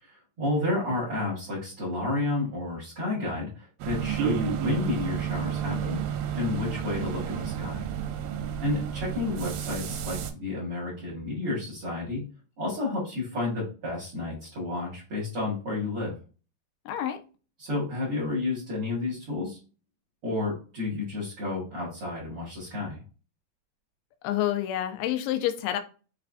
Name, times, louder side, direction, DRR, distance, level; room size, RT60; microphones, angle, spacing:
voice 1, 0.0-6.0 6.3-7.9 8.6-12.2 12.6-16.1 17.6-19.6 20.2-23.0, left 2 dB, 45° right, -7 dB, 2.1 m, -31 dB
sound 1, 3.8-10.3, right 9 dB, 80° right, 2.5 m, -31 dB
voice 2, 16.9-17.2 24.2-25.8, left 12 dB, 80° left, 7 dB, 2.5 m, -28 dB
5.9 x 3.2 x 2.5 m, 0.35 s
omnidirectional pair, 4.6 m